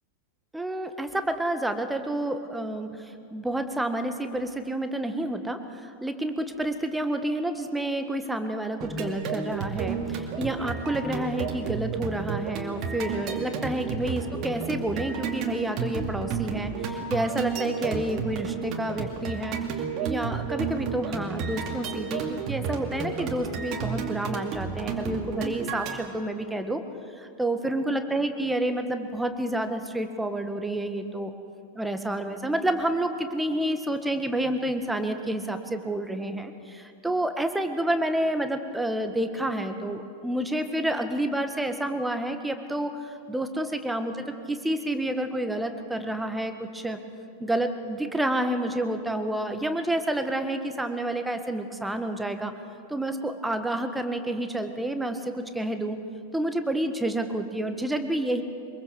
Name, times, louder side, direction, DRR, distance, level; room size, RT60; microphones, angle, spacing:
voice 1, 0.5-26.8 27.1-31.3 31.7-47.0 47.4-52.5 52.9-56.0 56.3-58.4, right 1 dB, 5° right, 8 dB, 1.5 m, -29 dB
sound 1, 8.8-26.0, right 6 dB, 35° right, 2.5 m, -32 dB
23.5 x 22.0 x 6.5 m, 2.6 s
figure-of-eight pair, 90°, 0 cm